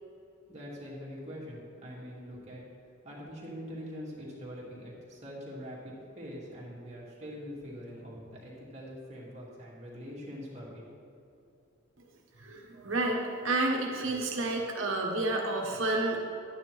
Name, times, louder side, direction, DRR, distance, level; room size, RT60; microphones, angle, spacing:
voice 1, 0.5-2.6 3.0-10.8, equal, 30° right, -5 dB, 2.1 m, -43 dB
voice 2, 12.4-16.2, right 2 dB, 65° right, 0 dB, 1.2 m, -30 dB
11.5 x 9.5 x 3.3 m, 2.6 s
head